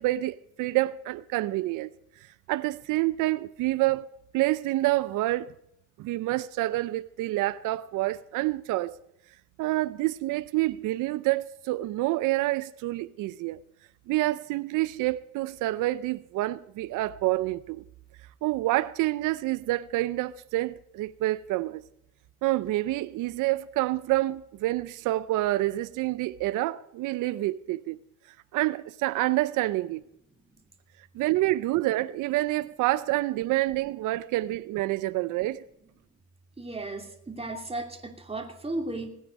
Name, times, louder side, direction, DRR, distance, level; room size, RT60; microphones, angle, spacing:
voice 1, 0.0-1.9 2.5-4.1 4.3-5.5 6.0-9.0 9.6-13.6 14.1-17.8 18.4-21.8 22.4-28.0 28.5-30.0 31.1-35.6, right 17 dB, 90° right, 0.5 m, -27 dB
voice 2, 36.6-39.1, right 2 dB, 20° right, 2.7 m, -35 dB
19.0 x 9.5 x 5.3 m
cardioid pair, 90°, 30 cm